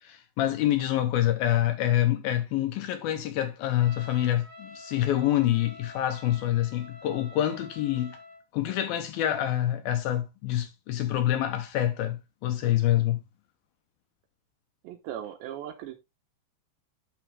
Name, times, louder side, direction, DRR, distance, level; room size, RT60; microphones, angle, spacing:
voice 1, 0.0-8.2 8.5-13.2, left 12 dB, 75° left, 2.3 m, -26 dB
Trumpet, 3.7-8.4, left 1 dB, 40° left, 1.1 m, -48 dB
voice 2, 14.8-16.0, right 10 dB, 80° right, 3.2 m, -38 dB
9.0 x 6.2 x 3.4 m
omnidirectional pair, 5.0 m